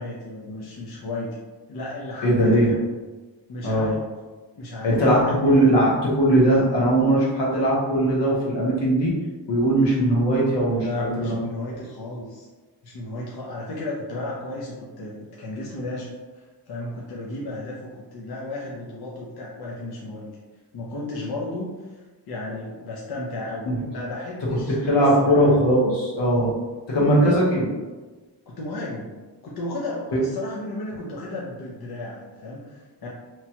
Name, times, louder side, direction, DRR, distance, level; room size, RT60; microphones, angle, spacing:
voice 1, 0.0-1.4 1.7-2.8 3.5-4.1 4.6-5.7 10.8-12.5 12.8-17.7 18.1-20.3 20.7-22.0 22.3-25.5 27.5-27.6 28.5-29.1 29.4-33.1, left 2 dB, 65° left, -5 dB, 0.7 m, -34 dB
voice 2, 2.2-2.7 3.6-3.9 4.8-9.1 9.5-11.4 23.6-23.8 24.7-26.5 26.9-27.7, right 1 dB, 85° left, -5 dB, 1.0 m, -19 dB
3.0 x 2.2 x 2.8 m, 1.3 s
wide cardioid pair, 95°, 42 cm